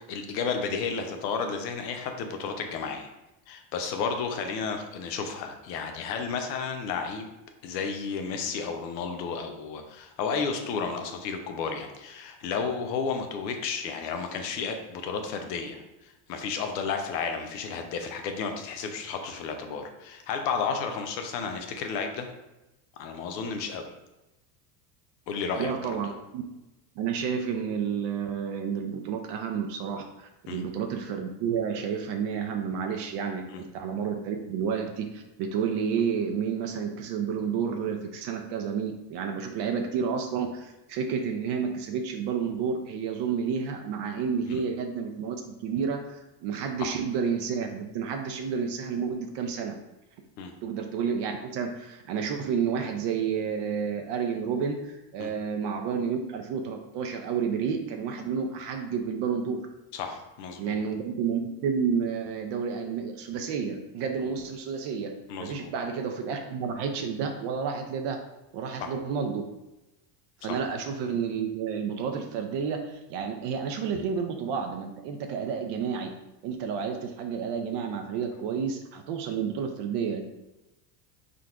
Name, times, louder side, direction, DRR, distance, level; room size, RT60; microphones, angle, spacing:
voice 1, 0.0-3.1 3.5-7.3 7.6-22.3 23.0-23.9 25.3-25.9 30.5-30.6 33.5-33.6 44.5-44.6 46.8-46.9 50.4-50.5 55.2-55.3 59.9-60.8 65.3-65.7 68.8-68.9 70.5-70.6, left 5 dB, 90° left, 5 dB, 0.8 m, -32 dB
voice 2, 25.6-26.4 27.0-49.7 50.6-59.6 60.6-68.2 68.5-69.4 70.4-76.1 76.4-80.2, right 6 dB, 55° right, 4 dB, 0.6 m, -30 dB
3.8 x 2.5 x 4.4 m, 0.98 s
supercardioid pair, 100°, 49 cm